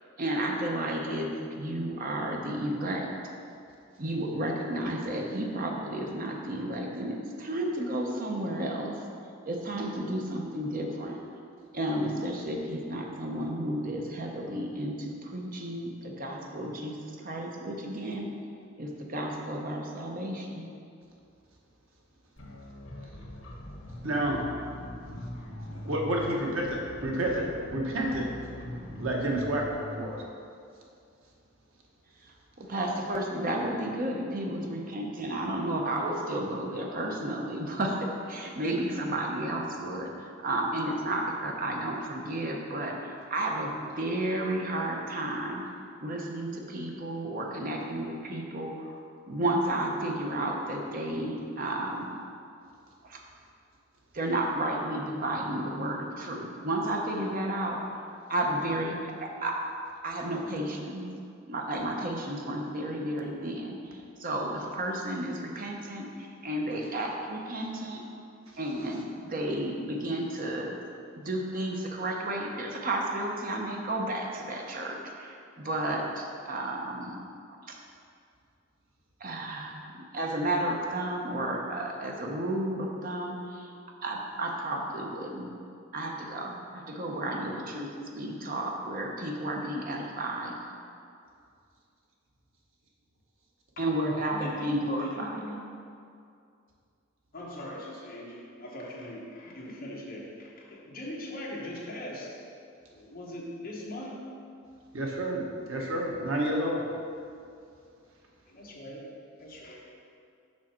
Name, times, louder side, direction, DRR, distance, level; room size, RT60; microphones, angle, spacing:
voice 1, 0.2-3.1 4.0-9.0 9.5-11.2 11.7-17.0 17.2-18.3 18.8-20.7 32.2-45.6 46.0-52.1 53.0-53.2 54.1-57.8 58.3-59.5 60.0-61.1 61.5-68.0 68.6-70.7 71.1-77.2 77.7-77.8 79.2-83.7 84.0-85.5 85.9-90.6 93.8-95.3, right 1 dB, 45° right, 0 dB, 0.8 m, -32 dB
sound 1, 22.4-30.0, left 1 dB, 70° left, 1.4 m, -42 dB
voice 2, 24.0-24.4 25.7-28.2 29.0-30.2 104.9-106.8, right 1 dB, 85° right, -2 dB, 1.2 m, -30 dB
voice 3, 94.3-95.6 97.3-102.4 102.9-104.3 108.5-109.0 109.4-109.9, left 1 dB, 45° left, -3 dB, 1.2 m, -41 dB
6.2 x 5.7 x 4.4 m, 2.4 s
head